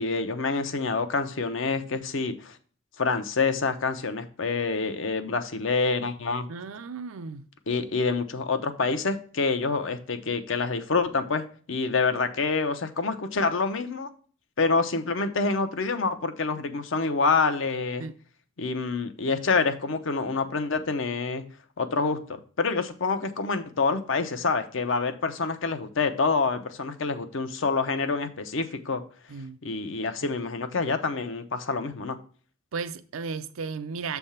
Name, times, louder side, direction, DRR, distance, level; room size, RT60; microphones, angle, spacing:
voice 1, 0.0-2.6 3.0-6.5 7.7-14.1 14.6-18.0 18.6-21.4 21.8-29.0 29.6-32.2, left 4 dB, 60° left, 0.7 m, -27 dB
voice 2, 6.5-7.5 18.0-18.2 29.3-29.6 32.7-34.2, right 5 dB, 75° right, 0.5 m, -35 dB
7.3 x 3.5 x 5.6 m
head